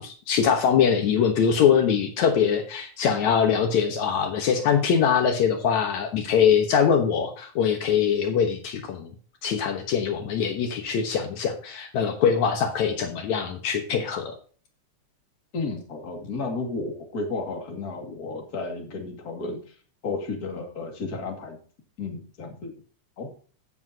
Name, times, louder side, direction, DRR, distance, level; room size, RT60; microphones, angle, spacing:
voice 1, 0.0-9.1 9.4-14.3, left 7 dB, 70° left, 5 dB, 2.5 m, -23 dB
voice 2, 15.5-19.6 20.0-21.6 22.0-22.7 23.2-23.3, left 3 dB, 30° left, 3 dB, 2.4 m, -32 dB
16.0 x 7.1 x 2.8 m, 0.41 s
omnidirectional pair, 3.5 m